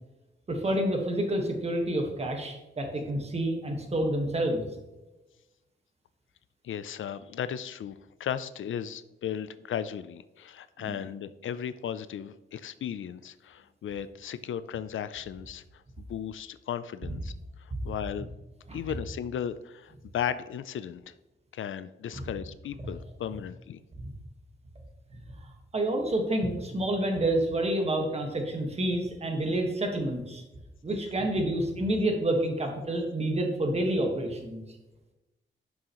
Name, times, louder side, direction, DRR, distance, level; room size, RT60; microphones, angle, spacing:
voice 1, 0.5-4.6 10.8-11.0 18.7-18.8 22.1-22.2 24.0-24.1 25.4-30.4 30.8-34.6, right 1 dB, 30° right, 2 dB, 1.5 m, -28 dB
voice 2, 6.6-17.3 17.6-18.3 18.7-21.2 21.5-23.8, left 9 dB, 85° left, 14 dB, 0.4 m, -36 dB
11.0 x 6.2 x 3.0 m, 1.0 s
wide cardioid pair, 180°, 20 cm